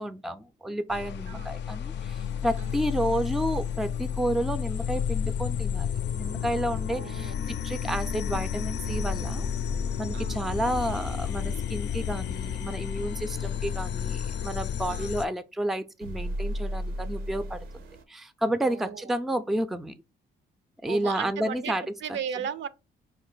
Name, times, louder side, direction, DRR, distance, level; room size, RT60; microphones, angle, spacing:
voice 1, 0.0-9.5 10.0-17.7 18.1-20.0 20.8-21.8 22.1-22.2, right 1 dB, ahead, 0.4 m, -31 dB
sound 1, 0.9-15.2, left 8 dB, 60° left, 0.4 m, -31 dB
voice 2, 1.3-1.6 2.6-2.8 6.9-7.4 10.1-10.5 14.9-15.1 18.6-19.1 20.9-21.7 22.0-22.7, right 8 dB, 65° right, 0.5 m, -36 dB
sound 2, 8.8-11.7 16.0-18.0, right 1 dB, 90° right, 0.8 m, -36 dB
4.4 x 2.5 x 3.8 m
cardioid pair, 90°, 20 cm